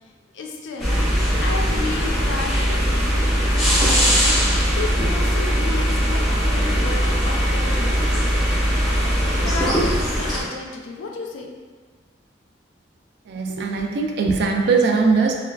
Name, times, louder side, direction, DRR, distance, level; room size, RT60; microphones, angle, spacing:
voice 1, 0.3-1.0 1.4-4.4 4.8-8.0 9.4-11.6, left 3 dB, 75° left, 1 dB, 0.4 m, -33 dB
sound 1, 0.8-10.4, equal, ahead, 0.7 m, -20 dB
voice 2, 13.3-15.4, right 4 dB, 60° right, 2 dB, 0.3 m, -20 dB
3.3 x 2.3 x 2.2 m, 1.5 s
head